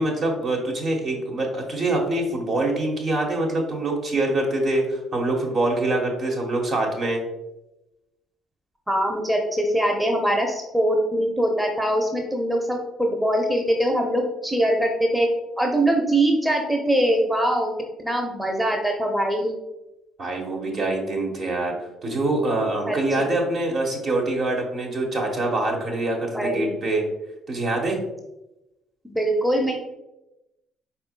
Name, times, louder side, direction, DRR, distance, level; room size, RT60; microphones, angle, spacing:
voice 1, 0.0-7.2 20.2-27.0 27.5-28.0, right 2 dB, 50° right, 0 dB, 1.2 m, -25 dB
voice 2, 8.9-15.3 15.6-17.7 18.0-19.5 22.9-23.3 26.3-26.8 29.0-29.8, right 1 dB, 10° right, 2 dB, 0.7 m, -22 dB
4.3 x 4.2 x 2.2 m, 0.95 s
hypercardioid pair, 60°, 0 cm